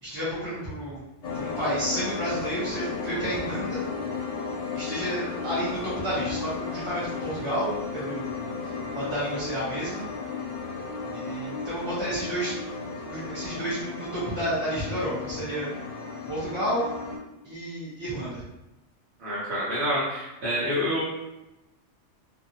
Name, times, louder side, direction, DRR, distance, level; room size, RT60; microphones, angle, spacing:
voice 1, 0.0-1.0 1.3-3.8 4.7-8.3 8.9-10.0 11.1-12.6 13.0-15.7 16.3-16.9 17.4-18.4, right 1 dB, 25° right, -11 dB, 0.9 m, -31 dB
sound 1, 1.2-17.2, left 4 dB, 90° left, 1.1 m, -34 dB
voice 2, 19.2-21.0, equal, 65° right, -9 dB, 1.1 m, -27 dB
2.6 x 2.6 x 2.7 m, 0.97 s
omnidirectional pair, 1.2 m